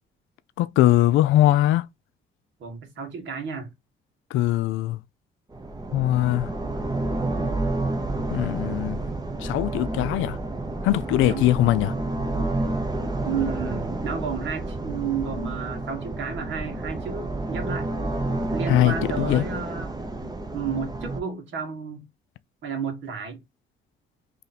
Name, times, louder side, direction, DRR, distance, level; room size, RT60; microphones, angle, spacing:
voice 1, 0.6-1.9 4.3-5.0 5.9-6.5 8.3-9.0 9.4-10.4 10.8-11.9 18.7-19.4, left 14 dB, 90° left, 0.4 m, -21 dB
voice 2, 2.6-3.7 11.2-11.5 13.2-17.9 18.5-19.9 20.5-22.0 22.6-23.4, right 6 dB, 70° right, 1.6 m, -32 dB
sound 1, 5.5-21.2, right 2 dB, 20° right, 0.8 m, -29 dB
3.1 x 2.7 x 4.1 m
cardioid pair, 90°, 20 cm